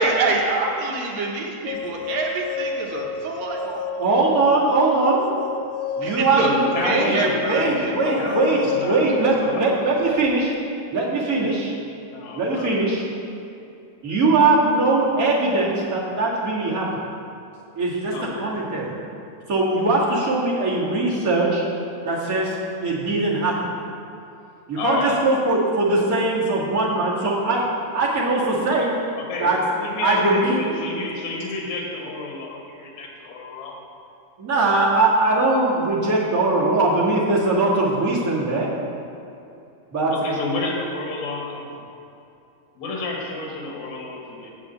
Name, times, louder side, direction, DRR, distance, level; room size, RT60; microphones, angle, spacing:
voice 1, 0.0-3.6 6.0-6.6 6.8-8.3, right 3 dB, 70° right, 0 dB, 2.0 m, -25 dB
sound 1, 1.7-10.4, left 6 dB, 90° left, 2.1 m, -31 dB
voice 2, 3.6-5.3 6.0-7.2 7.4-10.5 10.9-11.7 12.4-13.0 14.0-16.8 17.8-18.1 18.4-18.9 19.5-21.6 22.0-23.5 24.7-27.6 27.9-28.9 29.4-29.6 30.0-30.6 34.4-38.7 39.9-40.1, right 2 dB, 35° right, -6 dB, 1.7 m, -21 dB
voice 3, 6.4-9.9 11.4-11.6 12.1-12.9 14.1-14.2 18.1-18.6 24.8-25.1 29.1-33.8 40.1-41.9 42.8-44.5, left 3 dB, 70° left, 0 dB, 2.7 m, -30 dB
8.3 x 5.8 x 7.8 m, 2.7 s
omnidirectional pair, 3.5 m